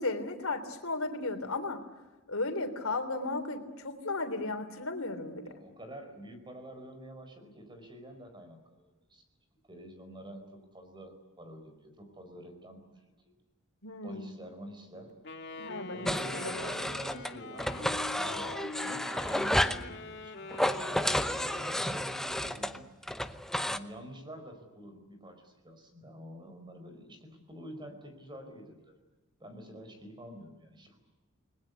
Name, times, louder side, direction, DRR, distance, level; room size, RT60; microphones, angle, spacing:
voice 1, 0.0-1.8 2.3-5.5 13.8-14.3 15.6-16.7, left 2 dB, 85° left, 7 dB, 3.4 m, -35 dB
voice 2, 5.4-9.2 9.7-13.3 14.0-15.2 15.9-18.5 18.8-22.9 23.7-29.0 29.4-31.0, equal, 20° right, 6 dB, 4.9 m, -48 dB
Wind instrument woodwind instrument, 15.2-22.2, left 3 dB, 55° left, 2.4 m, -44 dB
sound 1, 16.1-17.3 17.6-19.8 20.5-23.8, left 1 dB, ahead, 0.8 m, -31 dB
29.5 x 21.0 x 8.3 m, 1.2 s
head